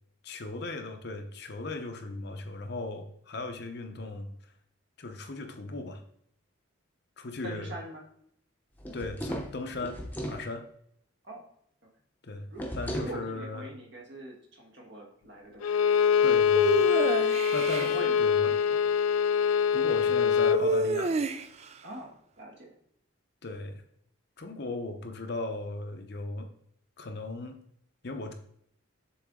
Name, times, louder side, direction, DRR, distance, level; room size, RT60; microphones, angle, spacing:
voice 1, 0.2-4.3 5.0-6.0 7.2-7.7 8.9-10.6 12.2-12.5 12.7-13.7 16.2-16.9 17.5-18.5 19.7-21.2 23.4-23.8 24.4-26.5 27.0-27.6 28.0-28.3, left 2 dB, 50° left, 6 dB, 0.7 m, -37 dB
voice 2, 7.4-8.0 11.2-11.4 12.5-12.7 13.0-15.7 17.8-18.1 18.5-18.8 21.8-22.7, right 2 dB, 55° right, 0 dB, 1.5 m, -43 dB
sound 1, 8.8-10.5 12.6-13.2, equal, 10° left, 0.8 m, -36 dB
Bowed string instrument, 15.6-20.7, left 7 dB, 85° left, 0.3 m, -24 dB
sound 2, 16.6-17.9 20.5-21.7, right 3 dB, 30° right, 0.3 m, -29 dB
7.0 x 3.8 x 3.7 m, 0.70 s
head